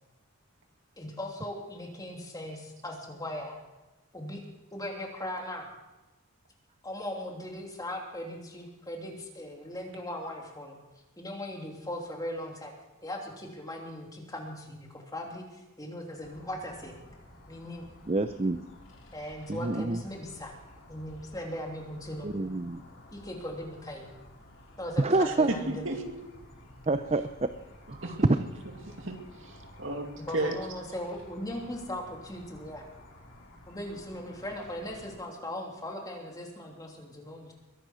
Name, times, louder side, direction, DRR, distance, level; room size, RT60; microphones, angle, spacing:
voice 1, 1.0-3.6 4.1-4.4 4.7-5.7 6.8-10.7 11.2-12.7 13.0-16.9 17.5-17.8 19.1-20.5 20.9-22.3 23.1-24.1 24.8-25.9 30.3-32.8 33.7-37.5, left 1 dB, 15° left, 0 dB, 3.1 m, -39 dB
sound 1, 16.2-35.2, left 1 dB, 70° left, 4.7 m, -53 dB
voice 2, 18.1-18.6 19.5-20.0 22.2-22.8 25.0-25.5 26.9-27.2 27.9-28.0, right 2 dB, 30° right, 10 dB, 0.6 m, -27 dB
voice 3, 25.2-26.0 28.0-28.2 28.8-30.6, right 1 dB, 65° right, 3 dB, 2.4 m, -34 dB
22.0 x 10.5 x 6.2 m, 1.1 s
head